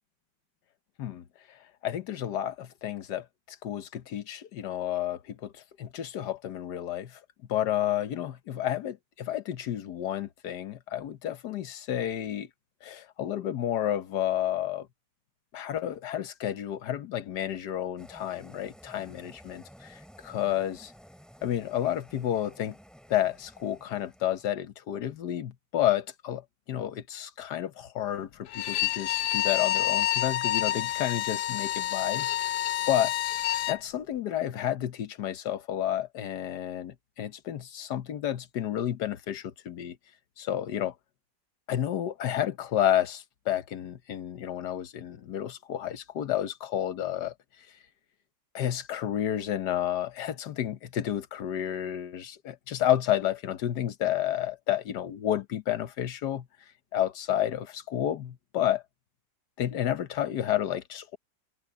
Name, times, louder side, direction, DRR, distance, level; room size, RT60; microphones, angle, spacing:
voice 1, 1.0-1.6 1.8-3.3 3.6-7.2 7.5-12.5 12.8-14.9 15.5-20.9 21.4-22.7 23.1-32.5 32.9-33.1 33.7-40.0 40.4-40.9 41.7-47.3 48.5-56.5 56.9-58.8 59.6-61.2, left 11 dB, 65° left, 1.5 m, -31 dB
sound 1, 18.0-24.5, equal, ahead, 4.1 m, -53 dB
Bowed string instrument, 28.5-33.8, left 14 dB, 85° left, 1.4 m, -28 dB
omnidirectional pair, 2.0 m